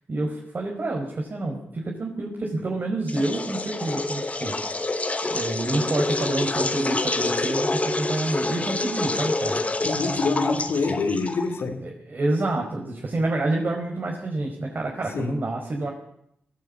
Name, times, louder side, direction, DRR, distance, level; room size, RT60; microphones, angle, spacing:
voice 1, 0.1-4.5 5.2-9.6 11.8-15.9, right 2 dB, 50° right, 0 dB, 5.2 m, -28 dB
sound 1, 3.1-11.6, left 2 dB, 35° left, 2.3 m, -27 dB
voice 2, 9.8-11.8 15.1-15.3, left 3 dB, 85° left, 1 dB, 4.2 m, -25 dB
20.5 x 16.0 x 8.8 m, 0.75 s
cardioid pair, 70°, 4 cm